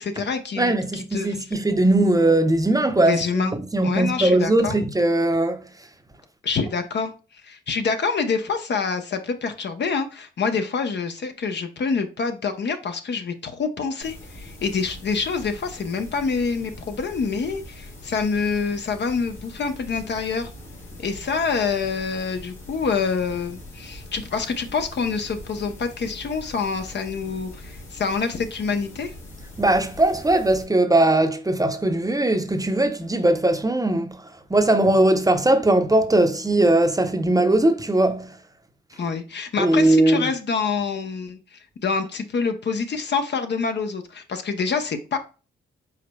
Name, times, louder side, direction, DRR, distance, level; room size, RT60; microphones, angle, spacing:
voice 1, 0.0-1.5 3.1-3.5 3.8-4.8 6.4-7.1 7.4-20.5 21.0-29.1 39.0-45.2, left 5 dB, 60° left, 0.8 m, -26 dB
voice 2, 0.6-5.6 29.6-34.1 34.5-38.3 39.6-40.3, right 1 dB, 15° right, 0.7 m, -19 dB
sound 1, 14.0-30.6, left 1 dB, 90° left, 2.1 m, -42 dB
4.9 x 4.1 x 2.2 m
cardioid pair, 60°, 21 cm